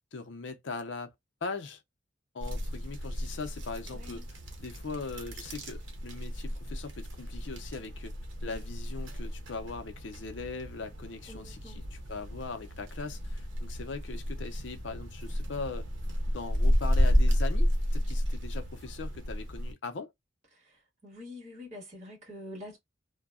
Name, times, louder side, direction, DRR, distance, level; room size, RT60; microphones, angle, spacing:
voice 1, 0.1-1.1 1.4-1.8 2.3-8.2 8.4-15.9 16.3-20.1, left 4 dB, 70° left, 0.6 m, -40 dB
sound 1, 2.4-19.7, equal, 90° right, 0.8 m, -32 dB
voice 2, 3.9-4.2 8.4-8.7 11.3-11.8 21.0-22.8, left 1 dB, 40° right, 1.5 m, -46 dB
2.7 x 2.2 x 2.3 m
head